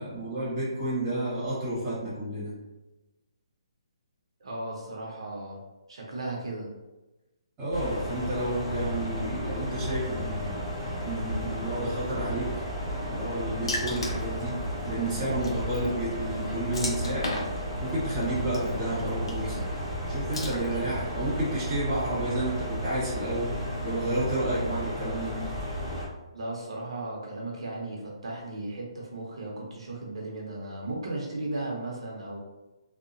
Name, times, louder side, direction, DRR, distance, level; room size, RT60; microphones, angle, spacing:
voice 1, 0.0-2.5 7.6-10.7 11.0-12.6 13.1-14.6 14.9-17.3 17.8-19.7 20.1-23.6 23.8-25.4, right 1 dB, 15° right, -10 dB, 1.0 m, -31 dB
voice 2, 4.4-5.6 5.9-6.7 26.3-32.4, right 2 dB, 70° right, -2 dB, 0.7 m, -36 dB
sound 1, 7.7-26.1, equal, 25° left, 1.2 m, -34 dB
Water / Splash splatter, 13.7-21.1, left 1 dB, 70° left, 0.6 m, -38 dB
2.7 x 2.1 x 2.6 m, 1.1 s
hypercardioid pair, 170°, 3 cm